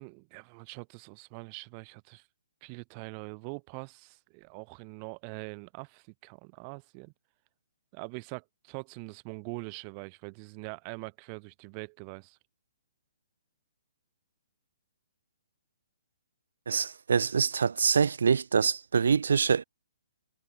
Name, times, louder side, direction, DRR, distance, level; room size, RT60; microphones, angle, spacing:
voice 1, 0.0-2.2 2.6-7.1 7.9-12.4, right 40 dB or more, 25° right, 3.2 m, -43 dB
voice 2, 16.7-19.6, right 6 dB, 80° right, 0.5 m, -25 dB
hypercardioid pair, 160°, 0 cm